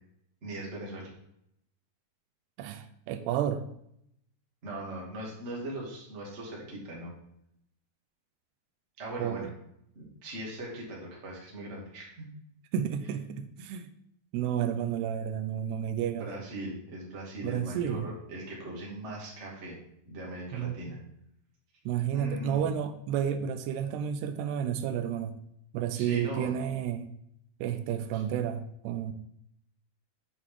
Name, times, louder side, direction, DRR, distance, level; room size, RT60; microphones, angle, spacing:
voice 1, 0.4-1.1 4.6-7.1 9.0-9.5 9.9-12.2 16.1-19.8 20.0-21.0 22.1-22.7 25.9-26.6 28.1-28.2, right 1 dB, 25° right, -4 dB, 1.8 m, -39 dB
voice 2, 2.6-3.7 9.2-9.5 12.7-13.9 14.3-16.3 17.4-18.1 20.5-21.0 21.9-25.4 25.7-27.1 27.6-29.1, right 9 dB, 85° right, 9 dB, 2.7 m, -31 dB
8.8 x 6.5 x 3.6 m, 0.74 s
omnidirectional pair, 4.7 m